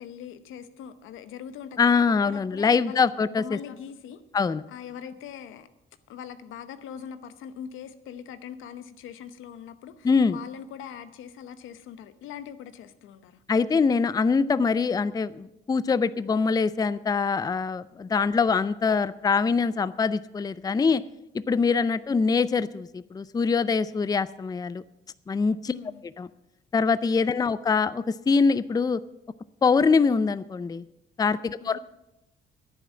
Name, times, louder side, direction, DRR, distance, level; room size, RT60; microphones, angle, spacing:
voice 1, 0.0-4.2 4.7-5.7 6.1-13.4 21.7-21.9 25.7-26.1 27.4-27.5 31.6-31.8, left 8 dB, 85° left, 12 dB, 0.9 m, -42 dB
voice 2, 1.8-3.6 4.3-4.6 10.0-10.4 13.5-21.0 21.3-24.8 25.3-25.7 26.2-26.3 26.7-29.0 29.6-30.9 31.2-31.8, left 5 dB, 20° left, 16 dB, 0.4 m, -23 dB
10.5 x 9.4 x 7.4 m, 0.88 s
cardioid pair, 90°, 20 cm